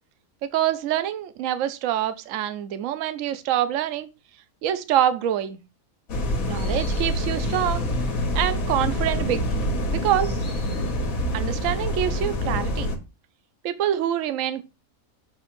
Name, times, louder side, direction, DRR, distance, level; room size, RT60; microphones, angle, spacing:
voice 1, 0.4-4.1 4.6-5.6 6.5-7.9 8.3-9.4 9.9-10.4 11.3-12.9 13.6-14.6, right 11 dB, 70° right, 1.0 m, -25 dB
sound 1, 6.1-13.0, left 1 dB, 70° left, 1.5 m, -26 dB
7.0 x 3.0 x 5.8 m
omnidirectional pair, 1.5 m